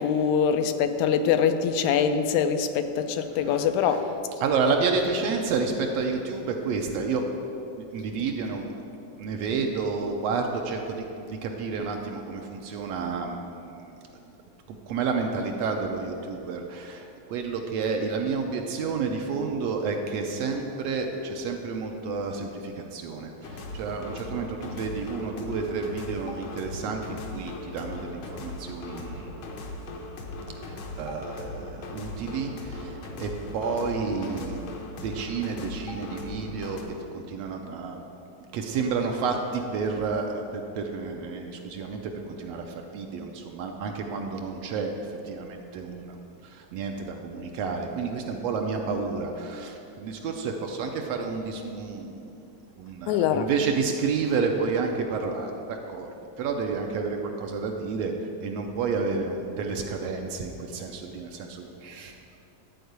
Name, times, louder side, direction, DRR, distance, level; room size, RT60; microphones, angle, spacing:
voice 1, 0.0-4.1 53.1-53.5, left 7 dB, 85° left, 9 dB, 1.9 m, -24 dB
voice 2, 3.2-4.0 4.4-7.2 7.8-8.8 9.2-11.0 11.3-13.9 14.7-29.4 30.6-34.6 35.0-38.0 38.5-42.0 42.3-44.9 45.3-52.3 52.8-56.1 56.4-58.1 58.4-62.1, right 4 dB, 75° right, 3 dB, 1.7 m, -30 dB
sound 1, 23.4-36.8, left 2 dB, 65° left, 1.3 m, -39 dB
11.5 x 4.5 x 7.9 m, 2.7 s
omnidirectional pair, 3.3 m